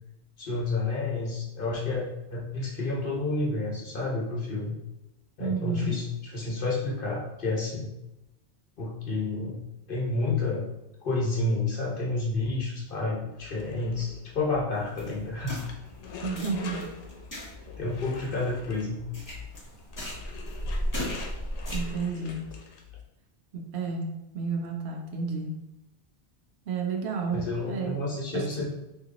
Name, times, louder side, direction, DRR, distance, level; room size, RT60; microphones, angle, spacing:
voice 1, 0.4-4.8 5.4-7.9 8.8-9.6 9.9-10.7 11.0-15.7 17.8-19.0 27.3-28.7, left 3 dB, 55° left, -3 dB, 1.0 m, -30 dB
voice 2, 5.4-6.0 16.2-16.9 21.7-22.4 23.5-25.6 26.7-28.0 28.3-28.7, right 4 dB, 75° right, 2 dB, 0.8 m, -31 dB
sound 1, 13.3-23.1, left 4 dB, 85° left, 0.9 m, -45 dB
sound 2, 14.7-22.0, equal, 20° left, 0.7 m, -36 dB
3.0 x 2.7 x 3.6 m, 0.92 s
omnidirectional pair, 1.1 m